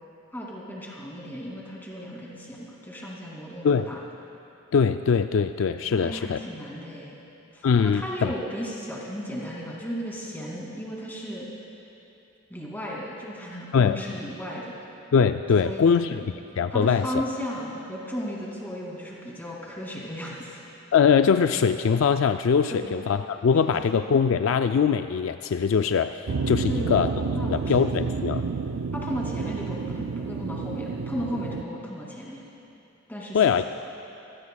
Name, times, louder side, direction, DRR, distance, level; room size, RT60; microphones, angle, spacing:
voice 1, 0.3-4.0 5.9-7.2 7.5-11.5 12.5-14.7 15.6-16.2 16.7-20.6 22.7-22.9 23.7-24.0 26.7-27.8 28.9-32.4 33.1-33.6, equal, 10° left, -4 dB, 2.5 m, -35 dB
voice 2, 4.7-6.4 7.6-8.3 13.7-14.0 15.1-16.2 16.6-17.1 20.9-27.1 27.5-28.4 33.3-33.6, left 6 dB, 65° left, 9 dB, 0.3 m, -22 dB
sound 1, 26.3-31.6, right 4 dB, 75° right, 0.5 m, -30 dB
25.5 x 18.0 x 2.3 m, 2.8 s
head